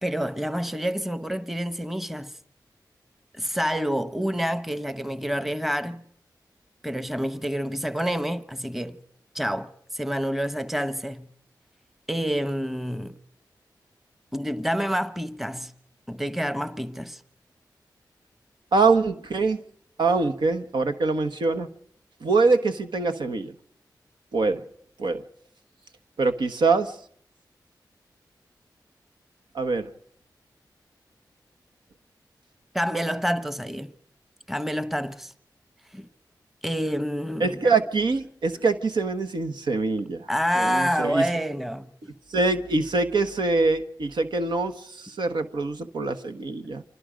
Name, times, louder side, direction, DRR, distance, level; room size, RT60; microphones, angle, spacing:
voice 1, 0.0-2.3 3.4-6.0 6.8-9.0 9.3-11.3 12.1-13.1 14.3-15.7 16.1-17.2 32.7-33.9 34.5-35.3 35.9-36.1 36.6-37.6 40.3-41.9, equal, 5° right, 1.1 m, -28 dB
voice 2, 18.7-19.6 20.0-21.7 22.2-23.5 24.3-24.6 25.0-25.2 26.2-26.9 29.5-29.9 37.4-40.3 40.5-41.3 42.3-46.8, right 3 dB, 80° right, 1.3 m, -24 dB
28.5 x 25.0 x 5.2 m
cardioid pair, 65°, 8 cm